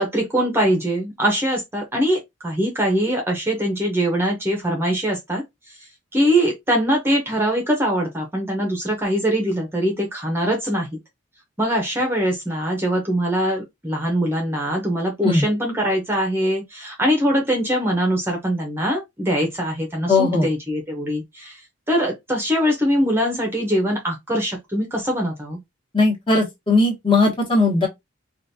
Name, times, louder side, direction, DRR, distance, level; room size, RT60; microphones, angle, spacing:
voice 1, 0.0-5.4 6.1-10.9 11.6-21.6 21.9-25.6, equal, 10° right, 0.8 m, -22 dB
voice 2, 20.1-20.5 25.9-27.9, left 3 dB, 25° left, 1.3 m, -18 dB
4.9 x 2.5 x 2.7 m
head